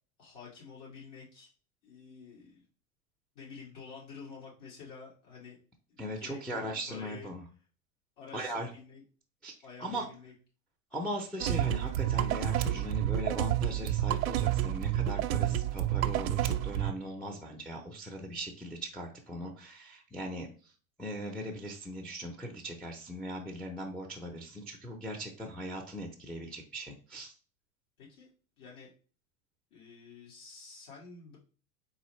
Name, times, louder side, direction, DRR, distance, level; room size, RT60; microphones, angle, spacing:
voice 1, 0.2-1.5 1.8-2.6 3.4-5.6 5.9-7.3 8.2-9.0 9.6-10.3 28.0-28.3 28.6-28.9 29.7-31.4, left 5 dB, 55° left, -4 dB, 2.2 m, -49 dB
voice 2, 6.0-7.4 8.3-8.7 9.4-9.5 9.8-10.0 10.9-20.5 21.0-27.3, equal, ahead, 1 dB, 0.6 m, -39 dB
sound 1, 11.4-16.9, right 12 dB, 75° right, 0.6 m, -29 dB
4.2 x 3.8 x 3.1 m, 0.39 s
hypercardioid pair, 110°, 42 cm